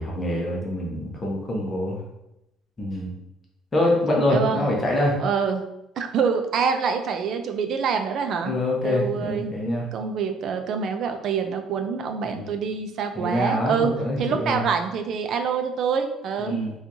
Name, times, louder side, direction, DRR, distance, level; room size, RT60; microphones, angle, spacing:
voice 1, 0.0-2.0 2.8-3.1 3.7-5.2 8.4-9.9 12.2-12.5 13.2-14.6 16.4-16.7, left 1 dB, 20° left, -2 dB, 0.7 m, -25 dB
voice 2, 4.3-4.7 5.2-5.7 6.0-8.5 8.8-9.5 9.9-13.9 14.2-16.6, right 6 dB, 55° right, 6 dB, 0.4 m, -26 dB
4.3 x 2.4 x 2.6 m, 0.88 s
cardioid pair, 135°, 0 cm